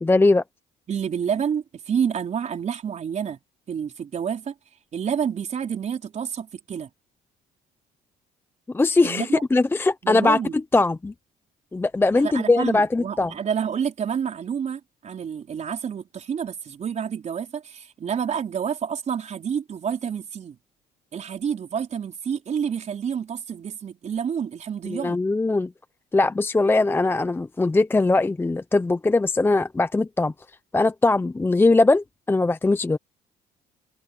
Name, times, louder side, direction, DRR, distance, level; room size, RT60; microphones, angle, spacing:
voice 1, 0.0-0.4 8.7-11.1 11.7-13.3 24.9-25.7 26.1-30.3 30.7-33.0, left 3 dB, 15° left, 0.6 m, -20 dB
voice 2, 0.9-3.4 3.7-4.5 4.9-6.9 9.0-9.4 10.0-10.5 12.2-20.6 21.1-25.2, right 7 dB, 45° right, 4.3 m, -29 dB
cardioid pair, 110°, 17 cm